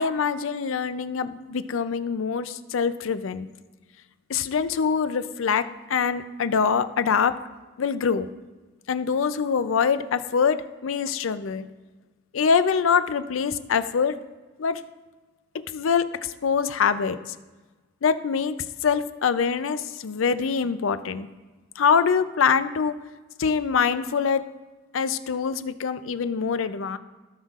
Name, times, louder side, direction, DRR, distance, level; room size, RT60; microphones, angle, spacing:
voice 1, 0.0-3.5 4.3-7.3 7.8-8.3 8.9-11.7 12.3-14.2 14.6-14.8 15.7-17.2 18.0-18.5 18.8-21.3 21.8-22.9 23.4-24.4 24.9-27.0, left 6 dB, 75° left, 12 dB, 0.5 m, -24 dB
16.0 x 5.6 x 2.4 m, 1.3 s
head